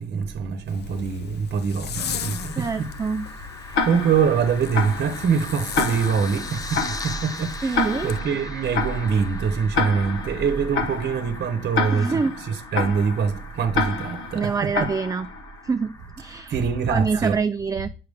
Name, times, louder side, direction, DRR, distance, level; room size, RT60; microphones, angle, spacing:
voice 1, 0.0-2.9 3.8-14.9 16.5-17.4, right 6 dB, 55° right, 0.9 m, -24 dB
Zipper (clothing), 0.7-8.2, left 9 dB, 55° left, 0.5 m, -37 dB
sound 1, 2.0-17.3, left 2 dB, 20° left, 0.8 m, -40 dB
voice 2, 2.6-3.3 3.6-3.9 7.6-8.1 11.9-12.4 14.3-15.3 15.6-16.6 16.9-17.9, right 5 dB, 15° right, 0.3 m, -26 dB
Tick-tock, 3.7-15.6, left 4 dB, 80° left, 1.2 m, -29 dB
7.9 x 5.7 x 3.5 m
cardioid pair, 90°, 20 cm